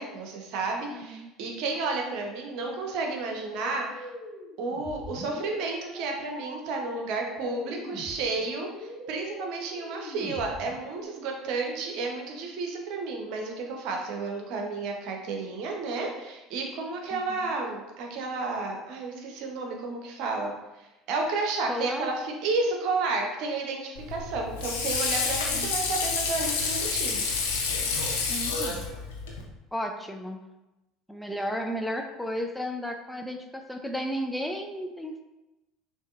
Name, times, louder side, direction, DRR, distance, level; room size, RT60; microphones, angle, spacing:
voice 1, 0.0-4.1 4.6-27.3, right 3 dB, 60° right, 2 dB, 0.8 m, -32 dB
voice 2, 0.9-1.3 17.1-17.6 21.7-22.1 25.5-25.7 28.3-28.8 29.7-30.4 31.1-35.2, equal, 5° left, 4 dB, 0.4 m, -34 dB
sound 1, 3.4-11.1, left 1 dB, 40° left, 1.4 m, -43 dB
Water / Sink (filling or washing), 23.9-29.4, left 4 dB, 75° left, 0.8 m, -29 dB
6.3 x 2.7 x 2.5 m, 1.0 s
hypercardioid pair, 70°, 0 cm